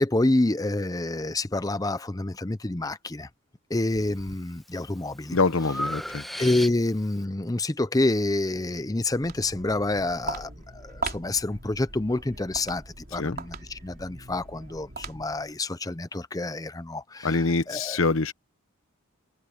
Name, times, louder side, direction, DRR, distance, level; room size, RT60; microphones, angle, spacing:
voice 1, 0.0-3.3 3.7-5.4 6.4-18.0, left 2 dB, 15° left, 0.6 m, -28 dB
Breathing, 3.9-4.4 4.9-7.1, equal, ahead, 1.4 m, -36 dB
voice 2, 5.3-6.2 13.2-13.4 17.2-18.3, left 3 dB, 70° left, 1.0 m, -25 dB
Walk footsteps, 9.0-15.5, right 3 dB, 45° right, 4.3 m, -39 dB
head